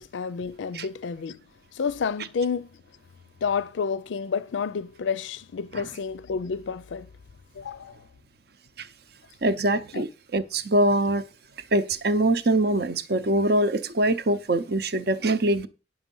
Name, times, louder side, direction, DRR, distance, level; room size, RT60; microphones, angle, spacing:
voice 1, 0.0-1.4 1.7-2.7 3.4-7.1 7.6-8.0 9.9-10.0, left 6 dB, 80° left, 0.4 m, -30 dB
voice 2, 9.4-10.1 10.3-11.2 11.7-15.7, right 1 dB, 55° right, 0.7 m, -23 dB
9.9 x 6.2 x 5.4 m
head